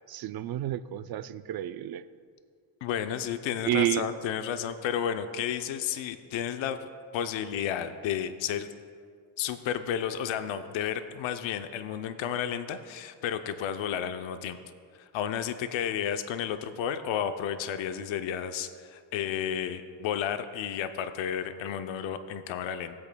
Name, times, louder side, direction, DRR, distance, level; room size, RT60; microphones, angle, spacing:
voice 1, 0.1-2.0 3.7-4.0, right 13 dB, 50° right, 13 dB, 0.5 m, -30 dB
voice 2, 2.8-6.9 7.1-8.7 9.4-14.6 15.0-22.9, left 9 dB, 75° left, 9 dB, 0.7 m, -32 dB
17.0 x 8.6 x 2.3 m, 2.1 s
supercardioid pair, 70°, 47 cm